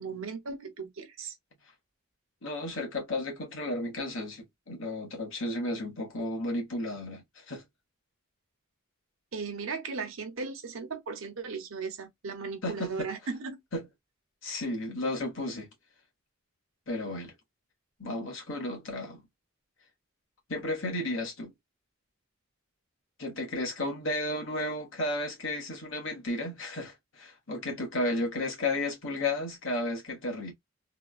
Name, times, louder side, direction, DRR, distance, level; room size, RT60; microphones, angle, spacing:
voice 1, 0.0-1.4 9.3-13.6, right 4 dB, 65° right, 0.9 m, -37 dB
voice 2, 2.4-7.6 12.6-13.1 13.7-13.9 14.4-15.7 16.9-17.3 18.0-19.3 20.5-21.5 23.2-30.5, left 1 dB, 60° left, 1.3 m, -33 dB
3.5 x 2.3 x 2.4 m
head